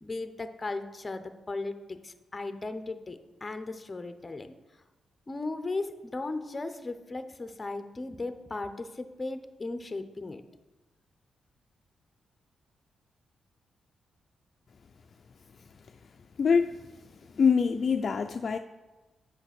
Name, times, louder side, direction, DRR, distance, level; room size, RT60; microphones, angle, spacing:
voice 1, 0.0-4.6 5.3-10.4, left 3 dB, 25° left, 9 dB, 0.7 m, -36 dB
voice 2, 16.4-16.8 17.3-18.6, left 6 dB, 50° left, 5 dB, 0.4 m, -24 dB
7.9 x 6.4 x 6.0 m, 1.2 s
cardioid pair, 105°, 0 cm